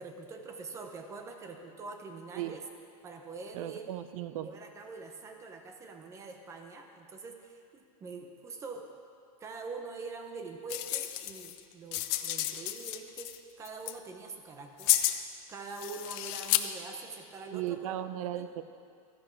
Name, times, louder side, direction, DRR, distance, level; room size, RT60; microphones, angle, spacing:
voice 1, 0.0-2.6 3.0-3.9 4.4-8.9 9.4-14.9 15.5-18.5, right 4 dB, 15° right, 5 dB, 0.7 m, -44 dB
voice 2, 3.5-4.5 17.5-18.6, right 12 dB, 65° right, 12 dB, 0.6 m, -36 dB
sound 1, 10.7-11.6 11.9-13.4 13.7-13.9 14.8-15.2 15.8-16.6, left 15 dB, 40° left, 0.5 m, -31 dB
14.0 x 10.0 x 4.5 m, 2.3 s
supercardioid pair, 175°, 19 cm